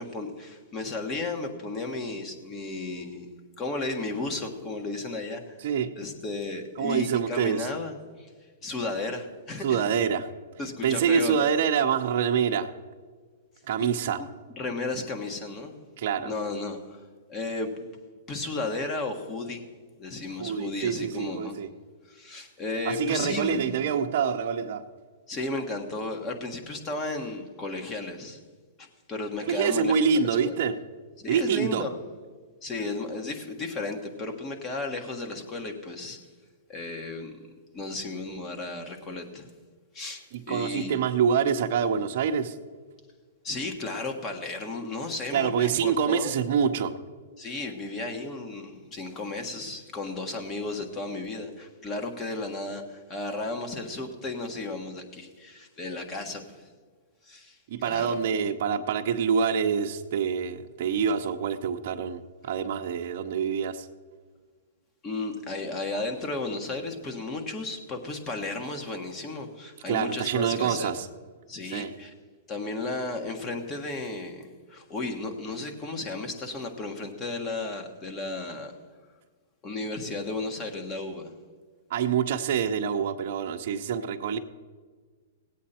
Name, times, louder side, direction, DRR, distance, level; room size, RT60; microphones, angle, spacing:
voice 1, 0.0-3.3 3.6-5.6 6.0-8.3 8.6-9.9 10.6-11.5 13.8-13.9 14.2-14.3 14.6-15.8 16.2-17.0 17.3-17.9 18.3-19.6 20.0-21.6 22.1-23.9 25.3-28.4 28.8-30.5 31.2-32.0 32.6-36.2 36.7-37.4 37.7-39.5 39.9-41.0 43.4-46.4 47.4-56.7 57.2-57.6 57.8-58.2 65.0-70.9 71.5-72.1 72.5-78.7 79.6-81.3, left 2 dB, 25° left, 4 dB, 1.5 m, -34 dB
voice 2, 5.6-6.0 6.8-7.7 9.6-10.3 10.8-12.7 13.7-14.2 16.0-16.3 20.4-21.7 22.8-24.9 29.4-30.8 31.3-31.8 40.3-42.5 45.3-46.9 57.7-63.9 69.9-71.1 71.7-71.9 81.9-84.4, right 7 dB, 55° right, 7 dB, 0.7 m, -26 dB
18.0 x 8.4 x 4.3 m, 1.5 s
hypercardioid pair, 135°, 0 cm